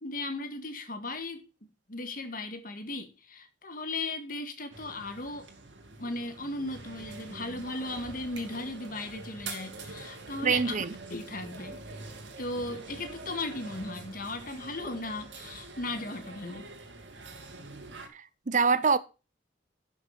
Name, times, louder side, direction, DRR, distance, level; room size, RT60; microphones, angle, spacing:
voice 1, 0.0-1.4 1.9-5.5 6.0-10.8 11.1-11.8 12.4-16.7, left 2 dB, 50° left, 1.8 m, -37 dB
sound 1, 4.7-18.1, right 3 dB, 80° right, 2.3 m, -45 dB
voice 2, 10.4-10.9 18.1-19.0, right 5 dB, 45° right, 0.7 m, -25 dB
11.0 x 6.3 x 5.2 m
head